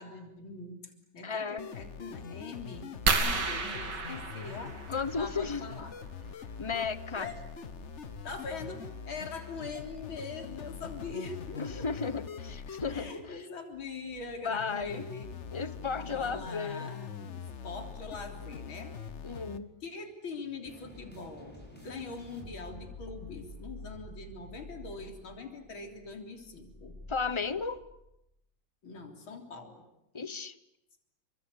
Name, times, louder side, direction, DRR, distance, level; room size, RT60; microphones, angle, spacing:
voice 1, 0.0-2.9 3.2-4.8 5.1-5.9 7.2-7.5 8.2-11.9 12.9-15.3 16.0-19.0 19.8-27.0 28.8-29.8, left 4 dB, 85° left, 4 dB, 4.3 m, -42 dB
voice 2, 1.2-1.7 4.9-5.7 6.6-7.3 11.6-13.1 14.4-15.0 15.5-16.9 19.2-19.7 27.1-27.8 30.1-30.5, left 5 dB, 20° left, 13 dB, 0.8 m, -34 dB
sound 1, 1.6-19.6, left 6 dB, 40° left, 1.2 m, -43 dB
sound 2, 3.1-5.4 7.0-7.2 7.8-7.9 8.2-8.4, right 4 dB, 60° right, 2.9 m, -31 dB
sound 3, 20.6-28.1, left 1 dB, 5° left, 7.1 m, -49 dB
29.0 x 25.0 x 8.3 m, 0.86 s
omnidirectional pair, 2.2 m